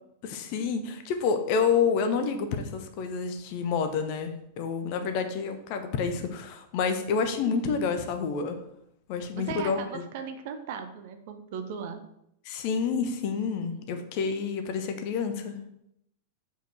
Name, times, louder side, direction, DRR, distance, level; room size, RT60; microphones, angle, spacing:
voice 1, 0.2-8.6 9.1-10.0 12.4-15.6, left 5 dB, 45° left, 7 dB, 1.0 m, -28 dB
voice 2, 9.3-12.0, right 7 dB, 50° right, 7 dB, 0.8 m, -37 dB
6.9 x 5.1 x 4.4 m, 0.76 s
figure-of-eight pair, 90°, 0 cm